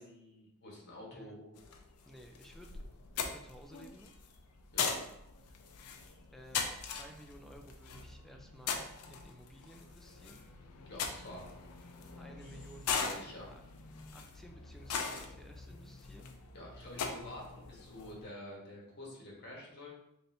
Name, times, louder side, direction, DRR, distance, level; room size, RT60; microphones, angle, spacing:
voice 1, 0.0-1.6 4.7-5.0 10.8-11.4 12.4-12.6 13.0-13.5 16.5-19.9, left 1 dB, 50° left, -3 dB, 1.3 m, -48 dB
voice 2, 1.1-1.4 2.1-2.7 3.2-4.1 6.3-10.4 12.1-13.6 14.1-16.3, equal, ahead, 3 dB, 0.3 m, -55 dB
sound 1, 1.6-18.3, left 5 dB, 85° left, 0.5 m, -41 dB
4.0 x 3.3 x 2.7 m, 0.79 s
head